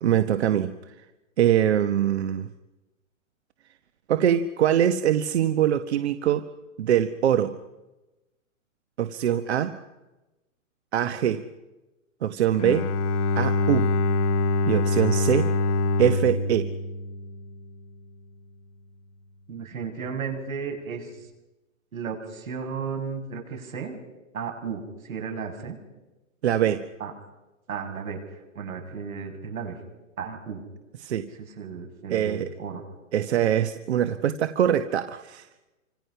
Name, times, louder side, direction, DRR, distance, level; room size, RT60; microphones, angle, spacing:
voice 1, 0.0-0.9 1.4-2.5 4.1-6.5 6.8-7.5 9.0-9.8 10.9-11.4 12.2-12.9 13.4-13.9 14.7-15.5 16.0-16.7 26.4-26.8 31.0-31.3 32.1-32.5 33.1-35.5, right 10 dB, 55° right, 10 dB, 1.2 m, -23 dB
Bowed string instrument, 12.6-17.8, left 3 dB, 25° left, 0.9 m, -25 dB
voice 2, 19.5-21.3 21.9-24.0 24.3-25.8 27.0-27.1 27.7-29.8 30.2-30.6 31.4-32.8, right 6 dB, 80° right, 3 dB, 7.2 m, -34 dB
29.5 x 26.0 x 5.7 m, 1.0 s
hypercardioid pair, 165°, 40 cm